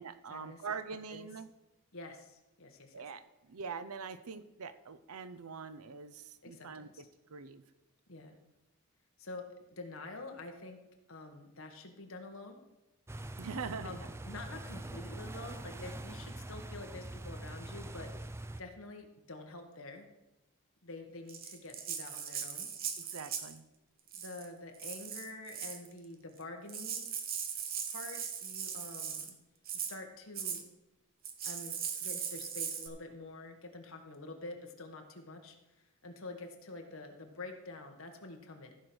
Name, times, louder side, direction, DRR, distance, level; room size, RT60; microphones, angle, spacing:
voice 1, 0.0-1.5 2.9-7.0 7.3-7.6 13.4-14.1 15.7-15.9 23.0-23.6, right 5 dB, 80° right, 13 dB, 0.7 m, -43 dB
voice 2, 1.9-3.0 6.4-7.0 8.1-8.4 9.2-10.8 11.1-12.6 13.8-20.1 20.8-22.7 24.1-27.1 27.9-29.3 29.7-30.6 31.4-35.6 36.0-38.7, left 2 dB, 65° left, 4 dB, 1.6 m, -47 dB
sound 1, 13.1-18.6, right 1 dB, 10° right, 0.4 m, -44 dB
Rattle (instrument), 21.3-23.6 24.1-24.5 24.8-25.9 26.4-26.5 26.7-29.3 29.7-30.0 30.4-30.6 31.2-32.9, right 7 dB, 40° right, 1.0 m, -39 dB
14.5 x 5.0 x 6.2 m, 0.96 s
head